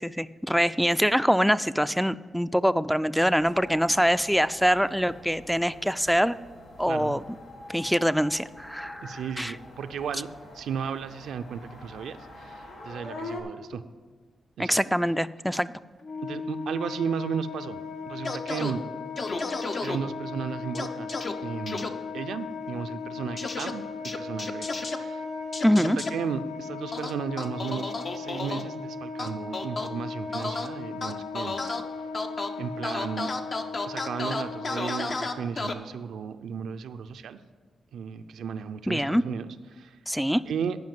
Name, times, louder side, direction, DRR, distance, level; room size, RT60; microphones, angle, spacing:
voice 1, 0.0-6.4 6.8-7.2 7.7-9.5 14.6-15.7 25.6-26.0 38.9-39.2 40.1-40.4, equal, ahead, 15 dB, 0.3 m, -24 dB
sound 1, 3.2-13.4, left 2 dB, 90° left, 1.5 m, -45 dB
voice 2, 9.0-13.8 14.6-14.8 16.2-18.8 19.8-21.2 21.4-21.9 22.1-25.2 25.7-32.0 32.6-33.3 33.9-37.4 37.9-40.0 40.5-40.8, right 7 dB, 85° right, 10 dB, 0.4 m, -35 dB
Wind instrument woodwind instrument, 16.0-35.5, left 4 dB, 75° left, 1.0 m, -37 dB
sound 2, 18.2-18.7 19.2-20.0 20.7-21.3 21.7-21.9 23.4-23.7 24.0-25.0 25.5-26.1 26.9-28.6 29.2-29.9 30.3-30.7 31.0-31.8 32.1-32.5 32.8-35.7, left 3 dB, 50° left, 0.8 m, -32 dB
10.5 x 5.1 x 7.5 m, 1.5 s
cardioid pair, 65°, 0 cm